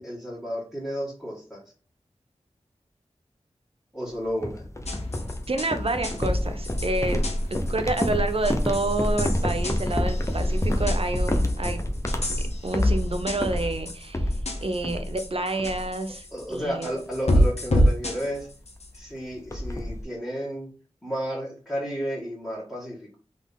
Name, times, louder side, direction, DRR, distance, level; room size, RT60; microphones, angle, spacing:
voice 1, 0.0-1.6 3.9-4.7 16.3-18.5 18.9-20.7 21.0-23.2, equal, 5° left, -7 dB, 2.1 m, -32 dB
sound 1, 4.4-15.3 15.6-16.1 16.4-16.7 17.1-17.3 18.4-18.5 18.7-18.8 19.1-20.0, left 1 dB, 25° left, 0.8 m, -27 dB
sound 2, 4.9-19.0, equal, 65° left, 1.1 m, -29 dB
voice 2, 5.5-7.2 7.5-11.8 12.6-14.3 14.6-16.9, right 2 dB, 55° right, 7 dB, 0.8 m, -29 dB
3.9 x 3.5 x 3.6 m, 0.38 s
cardioid pair, 40°, 12 cm